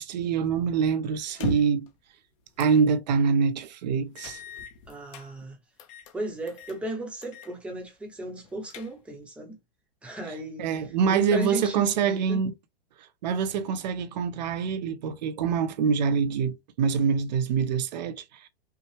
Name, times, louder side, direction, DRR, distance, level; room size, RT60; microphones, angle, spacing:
voice 1, 0.0-1.9 2.6-4.4 10.6-12.5 13.2-18.5, right 6 dB, 45° right, 0.7 m, -25 dB
sound 1, 1.3-1.9 2.6-2.8 3.2-3.3 4.2-5.3 5.8-6.1 6.5-6.8 7.2-7.5 7.8-7.9 8.4-9.2, left 3 dB, 35° left, 0.8 m, -37 dB
voice 2, 4.9-5.6 6.1-9.6 10.0-12.4, right 1 dB, 5° right, 0.8 m, -36 dB
5.6 x 2.1 x 3.3 m
hypercardioid pair, 165°, 30 cm